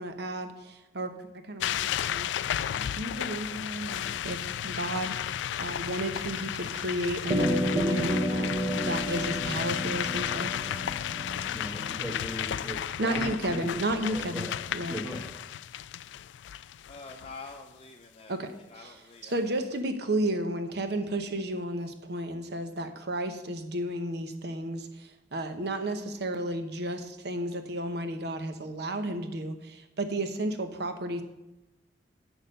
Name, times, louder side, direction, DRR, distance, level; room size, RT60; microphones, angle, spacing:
voice 1, 0.0-10.5 13.0-15.0 18.3-31.2, right 1 dB, 65° right, 7 dB, 1.0 m, -33 dB
sound 1, 1.6-17.5, left 10 dB, 80° left, 0.3 m, -33 dB
sound 2, 7.3-11.9, equal, 35° right, 1.3 m, -31 dB
voice 2, 11.5-13.2 13.5-13.6 14.1-14.6 14.9-15.2, equal, 10° right, 0 dB, 1.2 m, -38 dB
voice 3, 16.9-18.3 18.7-19.4, left 3 dB, 35° left, 2 dB, 0.7 m, -46 dB
7.9 x 6.5 x 6.6 m, 0.96 s
head